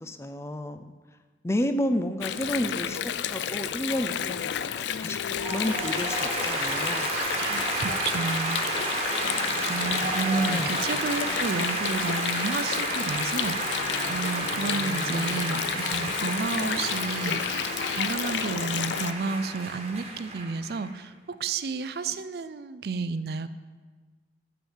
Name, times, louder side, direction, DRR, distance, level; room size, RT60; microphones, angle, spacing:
voice 1, 0.0-0.8 1.4-4.5 4.7-5.2 5.5-7.1 10.5-10.7 15.1-15.3, left 1 dB, 15° left, 9 dB, 0.4 m, -31 dB
Water, 2.2-19.1, left 9 dB, 80° left, 0.4 m, -31 dB
sound 1, 5.4-20.9, right 2 dB, 35° right, 1.4 m, -31 dB
voice 2, 7.4-8.6 9.7-23.5, right 4 dB, 60° right, 13 dB, 0.4 m, -31 dB
9.1 x 5.1 x 7.2 m, 1.4 s
head